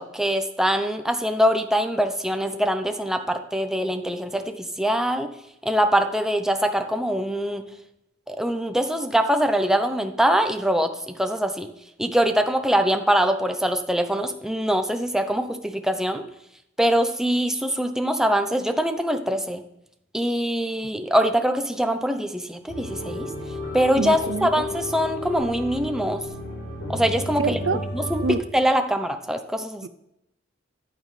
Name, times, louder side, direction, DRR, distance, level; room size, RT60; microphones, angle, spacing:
voice 1, 0.0-5.3 5.6-7.6 8.3-11.7 12.0-16.2 16.8-19.6 20.1-23.3 23.7-26.2 26.9-27.6 27.9-29.9, equal, 5° right, 6 dB, 0.6 m, -23 dB
sound 1, 22.7-28.3, left 1 dB, 85° left, 3.8 m, -32 dB
voice 2, 24.0-24.5 27.4-27.8 28.2-28.4 29.8-29.9, right 4 dB, 75° right, 14 dB, 0.5 m, -25 dB
9.5 x 9.0 x 3.3 m, 0.83 s
head